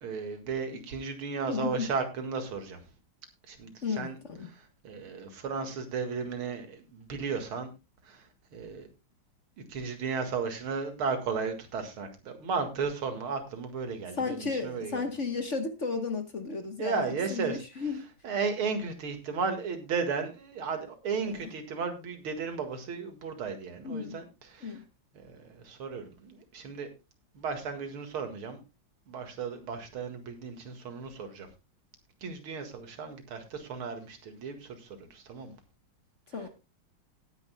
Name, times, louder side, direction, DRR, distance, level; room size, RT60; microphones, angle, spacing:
voice 1, 0.0-2.8 3.5-4.2 4.5-4.6 4.8-7.7 8.1-8.2 8.5-8.9 9.7-15.0 16.8-17.6 18.2-24.2 24.5-24.8 25.1-26.9 27.3-28.6 29.1-31.5 32.2-35.5, right 5 dB, 85° right, 6 dB, 2.7 m, -34 dB
voice 2, 1.5-1.9 3.8-4.5 14.2-18.1 21.2-21.4 23.8-24.2 24.6-24.8 36.3-36.5, left 4 dB, 40° left, 7 dB, 1.3 m, -34 dB
18.0 x 9.7 x 2.3 m, 0.26 s
omnidirectional pair, 2.3 m